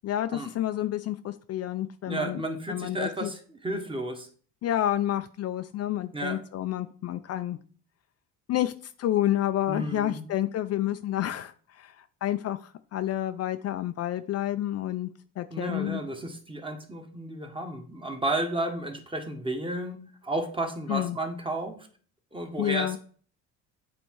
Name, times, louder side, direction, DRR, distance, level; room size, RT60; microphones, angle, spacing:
voice 1, 0.0-2.4 2.7-3.3 4.6-7.6 8.5-8.7 9.0-11.5 11.8-11.9 12.2-15.1 15.4-16.0 20.9-21.2 22.6-23.0, left 12 dB, 45° left, 9 dB, 0.5 m, -29 dB
voice 2, 2.1-4.3 6.1-6.4 9.7-10.3 15.5-21.9 22.3-23.0, right 1 dB, 15° right, 4 dB, 1.4 m, -32 dB
8.0 x 3.4 x 4.7 m, 0.43 s
supercardioid pair, 100°, 34 cm